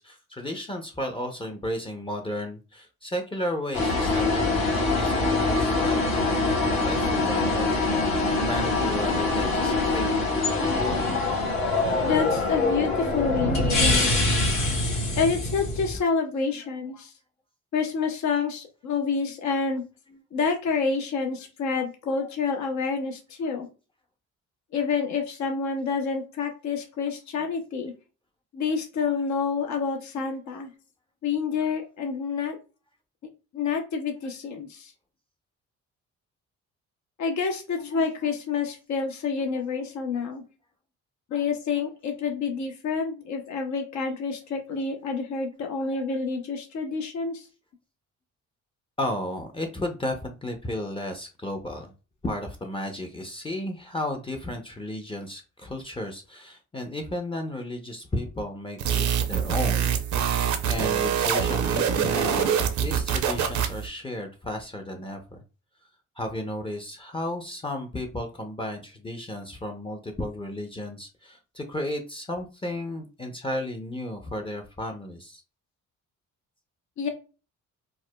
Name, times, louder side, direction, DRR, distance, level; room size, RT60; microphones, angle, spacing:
voice 1, 0.0-4.6 5.1-6.0 6.7-10.1 49.0-51.9 52.2-59.9 60.7-65.4 66.2-75.4, left 1 dB, 15° left, 2 dB, 0.6 m, -33 dB
sound 1, 3.7-16.0, left 2 dB, 90° left, 1.7 m, -24 dB
voice 2, 12.0-14.1 15.2-17.1 17.7-19.8 20.3-23.7 24.7-27.9 28.5-30.7 31.2-32.6 33.5-34.9 37.2-40.4 41.3-47.5 77.0-77.1, left 5 dB, 70° left, 3 dB, 0.9 m, -28 dB
sound 2, 58.8-63.9, right 8 dB, 70° right, 0.7 m, -25 dB
4.7 x 2.1 x 2.2 m, 0.32 s
cardioid pair, 90°, 30 cm